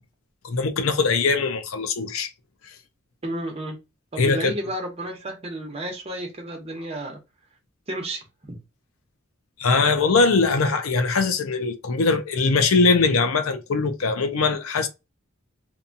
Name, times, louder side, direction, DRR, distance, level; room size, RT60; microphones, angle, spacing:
voice 1, 0.4-2.3 4.2-4.5 9.6-14.9, left 4 dB, 80° left, 0.5 m, -21 dB
voice 2, 3.2-3.8 4.1-7.2 7.9-8.6, right 1 dB, 30° right, 0.8 m, -32 dB
2.6 x 2.3 x 2.6 m
head